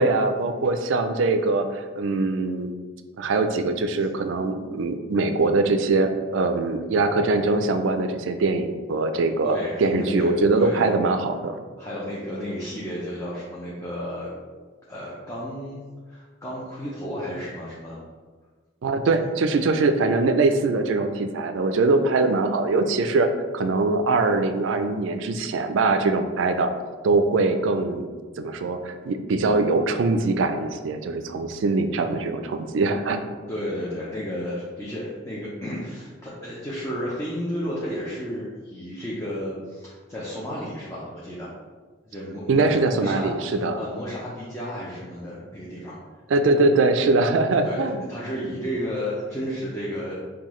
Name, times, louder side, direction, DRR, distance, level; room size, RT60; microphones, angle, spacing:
voice 1, 0.0-2.7 3.2-11.6 18.8-26.7 27.0-28.1 28.4-33.3 42.5-43.8 46.3-48.0, right 3 dB, 75° right, 8 dB, 0.4 m, -22 dB
voice 2, 9.4-10.3 10.5-10.9 11.8-14.3 14.9-15.8 16.1-18.0 33.5-41.5 42.1-46.0 47.6-47.8 48.1-50.2, equal, 15° left, -7 dB, 0.6 m, -32 dB
5.6 x 2.3 x 3.1 m, 1.4 s
head